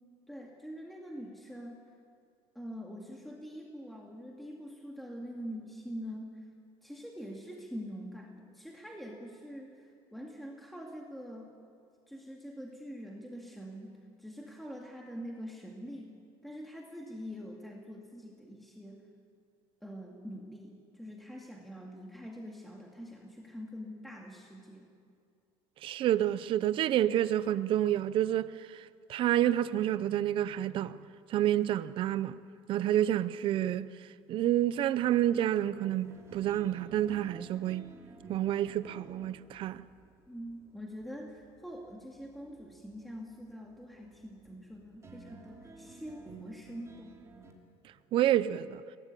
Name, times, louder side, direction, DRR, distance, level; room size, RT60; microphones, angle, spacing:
voice 1, 0.3-1.8 2.5-6.5 6.8-11.5 12.1-13.9 14.2-16.1 16.4-19.1 19.8-24.9 40.3-47.1, equal, ahead, 2.2 m, -44 dB
voice 2, 25.8-31.0 31.3-32.4 32.7-33.9 34.3-37.9 38.3-39.8 48.1-48.8, right 12 dB, 45° right, 0.7 m, -29 dB
sound 1, 35.7-47.5, right 4 dB, 25° right, 2.9 m, -53 dB
23.5 x 18.5 x 8.4 m
cardioid pair, 140°, 12 cm